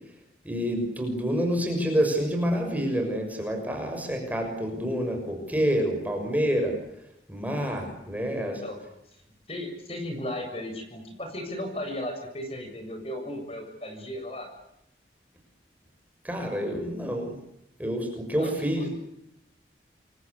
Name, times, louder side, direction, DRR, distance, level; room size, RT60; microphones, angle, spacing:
voice 1, 0.4-6.8 7.3-8.6 16.2-17.3 17.8-18.9, equal, 10° right, 2 dB, 6.4 m, -28 dB
voice 2, 9.5-14.5 18.3-18.9, left 1 dB, 35° left, 5 dB, 7.5 m, -35 dB
28.5 x 24.0 x 8.5 m, 0.83 s
head